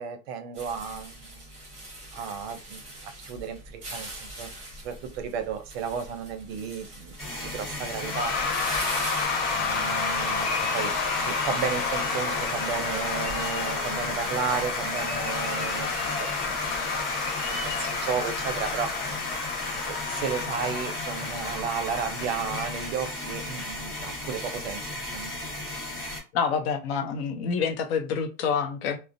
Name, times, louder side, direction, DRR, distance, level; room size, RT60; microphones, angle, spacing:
voice 1, 0.0-1.5 2.1-2.8 3.2-8.4 9.5-19.3 19.9-25.3, right 6 dB, 45° right, 0.6 m, -34 dB
sound 1, 0.5-9.3, right 1 dB, 15° right, 0.8 m, -41 dB
sound 2, 7.2-26.2, left 1 dB, ahead, 1.3 m, -35 dB
Cheering / Applause / Crowd, 8.0-23.6, left 4 dB, 65° left, 1.1 m, -30 dB
voice 2, 26.3-29.0, left 6 dB, 45° left, 0.6 m, -27 dB
2.4 x 2.0 x 2.6 m
supercardioid pair, 140°, 45 cm